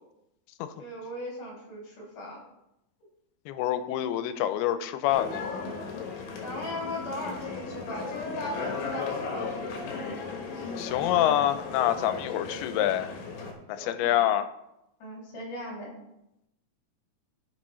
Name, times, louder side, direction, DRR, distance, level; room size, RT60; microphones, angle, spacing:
voice 1, 0.8-2.4 6.4-10.1 13.7-14.2 15.0-15.9, left 1 dB, 55° left, -3 dB, 4.2 m, -38 dB
voice 2, 3.5-5.5 10.8-13.1 13.7-14.4, left 12 dB, 90° left, 11 dB, 2.6 m, -26 dB
sound 1, 5.1-13.5, left 4 dB, 75° left, 2.9 m, -36 dB
14.0 x 6.0 x 3.1 m, 0.85 s
omnidirectional pair, 4.4 m